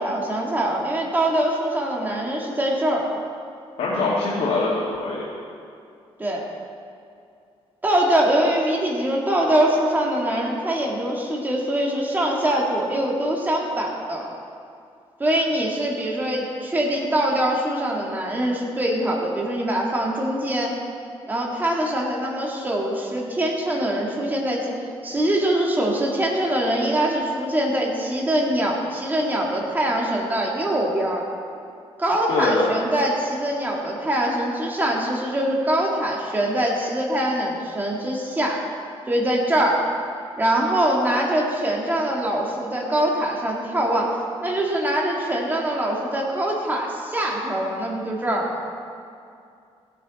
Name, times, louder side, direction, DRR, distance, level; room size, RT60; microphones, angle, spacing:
voice 1, 0.0-3.1 6.2-6.4 7.8-14.2 15.2-20.7 21.3-24.7 25.0-31.2 32.0-38.6 39.1-39.8 40.4-44.1 44.4-48.6, right 1 dB, 15° right, -2 dB, 1.9 m, -23 dB
voice 2, 3.8-5.3 32.3-32.7, left 3 dB, 85° left, -7 dB, 2.3 m, -23 dB
16.5 x 10.0 x 4.2 m, 2.4 s
wide cardioid pair, 155°, 11 cm